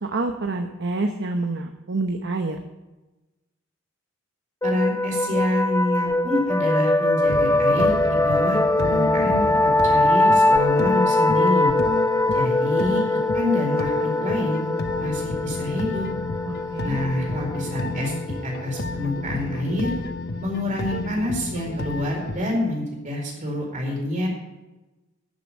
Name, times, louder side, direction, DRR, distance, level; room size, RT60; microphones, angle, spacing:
voice 1, 0.0-2.6 16.5-17.0, right 2 dB, 60° right, 5 dB, 0.9 m, -27 dB
sound 1, 4.6-19.9, left 2 dB, 15° left, 0.5 m, -22 dB
voice 2, 4.6-11.7 12.3-13.0 13.3-14.6 15.0-16.1 16.8-18.1 18.4-19.9 20.4-24.3, left 1 dB, 40° right, -1 dB, 4.4 m, -27 dB
sound 2, 7.2-22.6, left 2 dB, 50° left, 0.8 m, -32 dB
11.5 x 7.0 x 8.7 m, 1.1 s
head